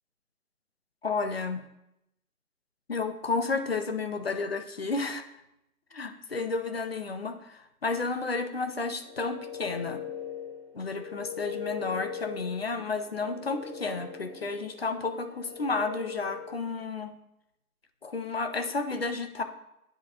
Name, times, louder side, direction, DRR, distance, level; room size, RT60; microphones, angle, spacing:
voice 1, 1.0-1.6 2.9-5.2 5.9-10.0 10.7-17.1 18.0-19.4, left 4 dB, 45° left, 8 dB, 0.5 m, -32 dB
sound 1, 8.9-16.7, left 6 dB, 15° right, 0.8 m, -41 dB
9.7 x 3.8 x 2.8 m, 0.85 s
figure-of-eight pair, 155°, 45 cm